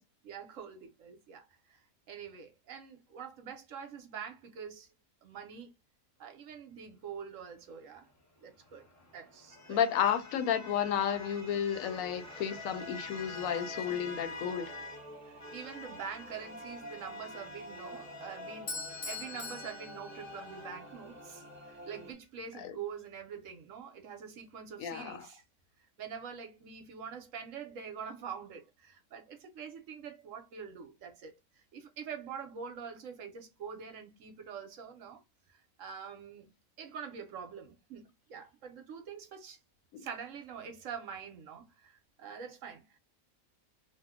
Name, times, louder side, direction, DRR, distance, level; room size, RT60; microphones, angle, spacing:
voice 1, 0.2-4.9 5.2-5.7 6.2-8.1 8.4-8.9 9.1-9.8 13.9-14.1 15.3-18.8 19.1-25.4 26.0-35.2 35.5-39.6 40.0-43.0, right 7 dB, 65° right, 1.0 m, -45 dB
sound 1, 8.4-15.1 15.4-20.7, left 3 dB, 20° left, 0.5 m, -48 dB
voice 2, 9.7-14.7 22.6-22.7 24.8-25.3 39.9-40.1, left 9 dB, 70° left, 1.0 m, -32 dB
sound 2, 11.8-22.1, equal, 45° right, 0.5 m, -49 dB
Bell / Doorbell, 18.7-20.8, left 3 dB, 50° left, 0.7 m, -42 dB
2.7 x 2.1 x 3.5 m
omnidirectional pair, 1.6 m